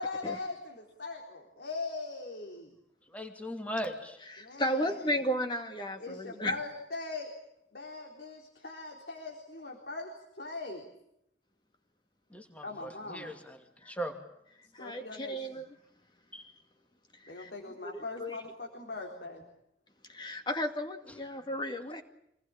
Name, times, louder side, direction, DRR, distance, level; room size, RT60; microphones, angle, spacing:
voice 1, 0.0-2.7 4.4-5.2 6.0-7.3 7.7-10.9 12.6-13.3 14.8-15.6 17.3-19.4, left 3 dB, 70° left, 0 dB, 4.1 m, -40 dB
voice 2, 3.1-4.2 12.3-13.6 13.9-14.2 16.3-16.5, equal, 10° left, 4 dB, 2.5 m, -38 dB
voice 3, 4.3-6.6 13.8-13.9 14.7-15.7 17.2-17.5 17.9-18.4 20.1-22.0, equal, 25° left, 6 dB, 2.3 m, -34 dB
27.0 x 20.0 x 8.9 m, 0.78 s
head